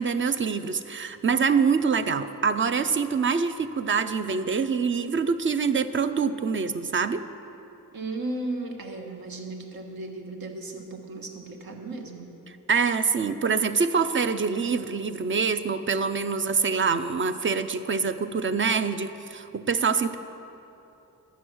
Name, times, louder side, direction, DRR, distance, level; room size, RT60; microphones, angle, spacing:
voice 1, 0.0-7.2 12.7-20.2, right 5 dB, 35° right, 11 dB, 0.4 m, -25 dB
voice 2, 7.9-12.3, right 2 dB, 75° right, 2 dB, 1.5 m, -35 dB
12.0 x 9.4 x 6.2 m, 2.9 s
wide cardioid pair, 170°, 36 cm